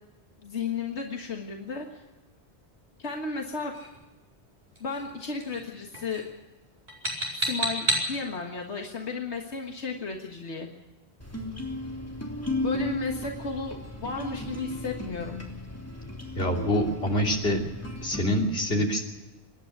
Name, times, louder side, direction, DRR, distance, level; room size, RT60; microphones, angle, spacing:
voice 1, 0.4-2.0 3.0-3.7 4.8-6.2 7.3-10.7 12.6-15.4, left 4 dB, 90° left, 2 dB, 1.9 m, -34 dB
sound 1, 3.7-4.0 4.8-5.1 5.4-5.7 5.9-6.3 6.9-8.1, right 1 dB, 45° right, 5.4 m, -30 dB
sound 2, 11.2-18.4, left 1 dB, 15° left, 3.4 m, -35 dB
voice 2, 16.3-17.6 18.0-19.0, equal, 65° left, 1 dB, 3.4 m, -25 dB
26.0 x 10.5 x 9.5 m, 1.2 s
omnidirectional pair, 1.1 m